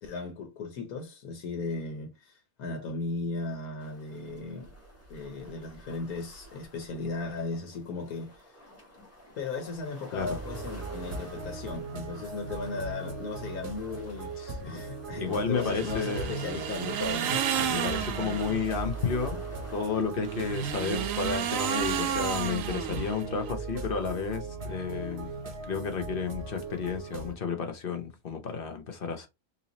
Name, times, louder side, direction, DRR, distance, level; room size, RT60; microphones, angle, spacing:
voice 1, 0.0-4.7 5.1-8.4 9.4-18.1, left 3 dB, 80° left, 1.5 m, -36 dB
sound 1, 3.8-21.1, equal, 10° left, 0.9 m, -51 dB
sound 2, 10.1-27.3, right 3 dB, 50° right, 1.1 m, -39 dB
voice 2, 14.4-14.8 15.1-16.4 17.7-19.4 19.7-25.3 25.6-29.3, left 5 dB, 50° left, 0.8 m, -32 dB
sound 3, 15.6-18.7 20.2-23.5, right 9 dB, 70° right, 0.9 m, -31 dB
4.0 x 2.7 x 2.9 m
omnidirectional pair, 1.5 m